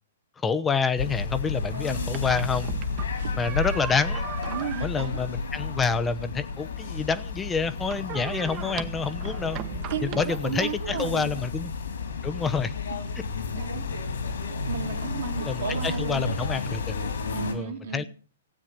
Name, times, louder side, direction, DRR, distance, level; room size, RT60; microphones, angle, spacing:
voice 1, 0.4-2.7 3.4-4.3 4.8-9.6 10.0-11.7 12.2-12.7 15.4-17.0 17.5-18.0, left 5 dB, 15° left, 0.8 m, -28 dB
Noisy street, 1.0-17.5, left 4 dB, 70° left, 3.6 m, -32 dB
sound 1, 1.7-11.2, right 10 dB, 35° right, 1.2 m, -40 dB
voice 2, 1.7-2.4 3.1-3.4 4.5-5.3 9.6-11.3 12.9-13.1 13.5-13.8 14.6-16.3 17.3-18.1, right 7 dB, 60° right, 2.5 m, -34 dB
16.0 x 8.7 x 6.6 m
figure-of-eight pair, 115°, 0 cm